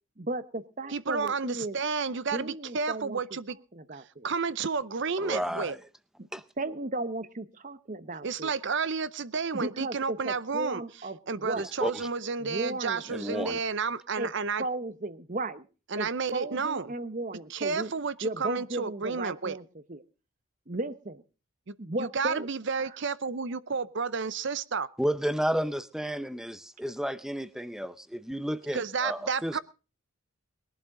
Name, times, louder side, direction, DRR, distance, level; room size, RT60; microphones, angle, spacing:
voice 1, 0.2-1.8 2.3-3.2 3.7-4.3 6.2-6.3 6.6-8.5 9.5-11.7 12.4-13.0 14.2-14.3 14.6-15.7 16.0-17.9 18.2-20.0 20.7-21.2 21.8-22.5 22.8-22.9, right 2 dB, 35° right, 0.9 m, -35 dB
voice 2, 0.9-3.6 3.9-5.8 8.2-10.8 11.3-14.6 15.9-16.9 17.5-19.6 21.7-21.8 22.0-24.9 28.7-29.6, right 5 dB, 55° right, 0.7 m, -31 dB
voice 3, 5.2-5.8 6.3-6.4 11.8-12.1 13.1-13.6 25.0-29.6, equal, ahead, 0.6 m, -32 dB
21.0 x 11.5 x 3.8 m
head